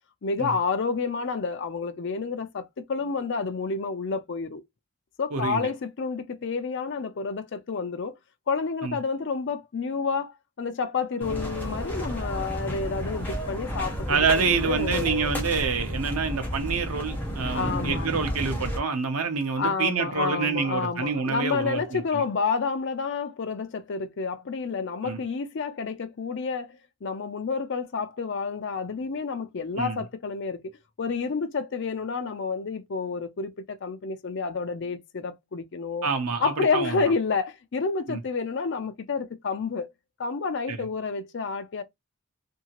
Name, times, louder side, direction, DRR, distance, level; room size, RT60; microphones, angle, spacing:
voice 1, 0.2-4.6 5.2-8.2 8.5-15.3 17.4-18.1 19.6-30.7 31.0-36.1 36.4-39.9 40.2-41.8, left 4 dB, 55° left, 0.4 m, -29 dB
voice 2, 5.3-5.7 8.8-9.0 14.1-22.2 25.0-25.2 29.8-30.0 36.0-37.0 38.1-38.2 40.7-40.8, right 5 dB, 90° right, 0.7 m, -27 dB
sound 1, 11.2-18.8, equal, 10° left, 0.8 m, -32 dB
2.7 x 2.7 x 2.9 m
head